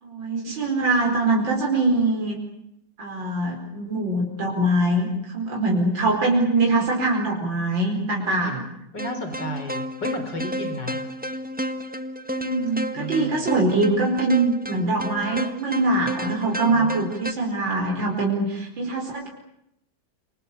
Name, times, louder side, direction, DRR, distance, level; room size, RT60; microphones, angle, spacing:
voice 1, 0.0-2.4 3.0-8.6 12.2-19.3, right 2 dB, 80° right, 0 dB, 5.5 m, -23 dB
voice 2, 8.9-11.0 12.9-13.4 16.7-17.1, equal, 65° left, 6 dB, 4.8 m, -33 dB
sound 1, 9.0-17.3, equal, 5° right, 1.2 m, -32 dB
28.5 x 27.0 x 7.0 m, 0.81 s
omnidirectional pair, 2.1 m